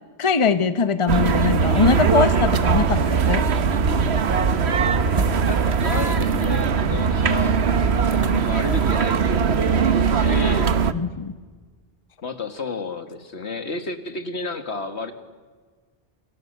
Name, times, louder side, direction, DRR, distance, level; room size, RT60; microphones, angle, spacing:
voice 1, 0.2-3.5 6.9-7.0 10.9-11.4, left 5 dB, 30° left, 11 dB, 0.9 m, -21 dB
sound 1, 1.1-10.9, right 6 dB, 70° right, 1.3 m, -20 dB
sound 2, 5.1-10.2, right 3 dB, 35° right, 1.2 m, -36 dB
voice 2, 5.4-7.5 8.0-10.7 12.2-15.1, left 3 dB, 70° left, 8 dB, 2.2 m, -31 dB
30.0 x 27.0 x 6.8 m, 1.5 s
omnidirectional pair, 1.1 m